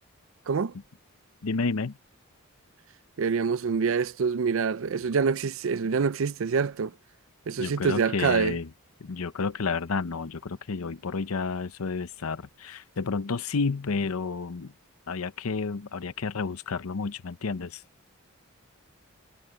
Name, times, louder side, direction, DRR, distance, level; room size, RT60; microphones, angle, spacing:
voice 1, 1.4-2.0 7.6-8.7 9.0-14.7 15.1-17.8, left 4 dB, 80° left, 0.7 m, -31 dB
voice 2, 3.2-6.9 7.5-8.6, right 5 dB, 65° right, 0.4 m, -26 dB
head